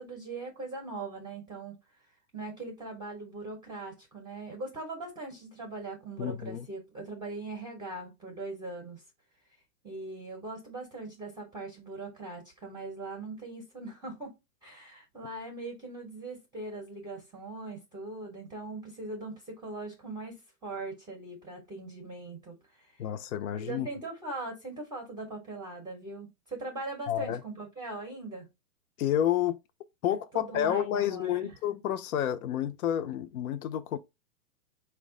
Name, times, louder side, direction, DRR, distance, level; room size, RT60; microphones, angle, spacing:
voice 1, 0.0-1.8 2.3-9.0 9.8-14.3 14.6-23.0 23.5-28.5 30.3-31.5, right 2 dB, 10° right, 0.6 m, -40 dB
voice 2, 6.2-6.7 23.0-23.9 27.1-27.4 29.0-29.6 30.0-34.0, left 10 dB, 70° left, 0.6 m, -30 dB
4.5 x 2.2 x 3.5 m
hypercardioid pair, 135°, 45 cm